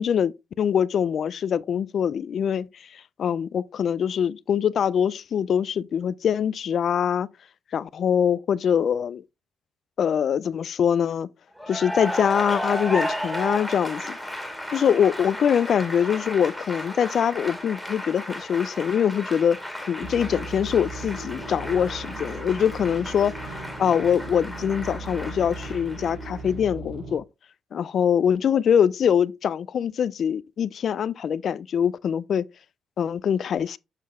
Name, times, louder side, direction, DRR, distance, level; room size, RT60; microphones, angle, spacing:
voice 1, 0.0-2.7 2.9-7.3 7.7-9.2 10.0-11.3 11.7-14.2 14.7-19.6 19.9-23.3 23.8-27.2 27.7-32.5 33.0-33.8, left 8 dB, 60° left, 0.3 m, -23 dB
Cheering / Applause, 11.6-26.5, equal, ahead, 1.9 m, -34 dB
sound 1, 20.0-27.2, right 3 dB, 85° right, 3.4 m, -38 dB
7.2 x 6.6 x 2.4 m
cardioid pair, 90°, 0 cm